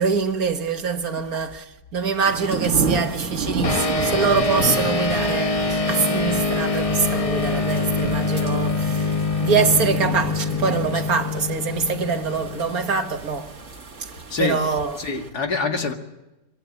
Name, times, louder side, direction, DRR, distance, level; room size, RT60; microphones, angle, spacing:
voice 1, 0.0-13.5 14.0-14.1 14.4-15.0, right 5 dB, 60° right, 1.9 m, -24 dB
sound 1, 2.2-15.3, right 4 dB, 45° right, 2.1 m, -32 dB
sound 2, 3.6-13.4, left 3 dB, 25° left, 0.9 m, -24 dB
voice 2, 14.3-14.6 15.0-15.9, left 4 dB, 70° left, 2.6 m, -25 dB
24.5 x 24.0 x 7.5 m
omnidirectional pair, 1.7 m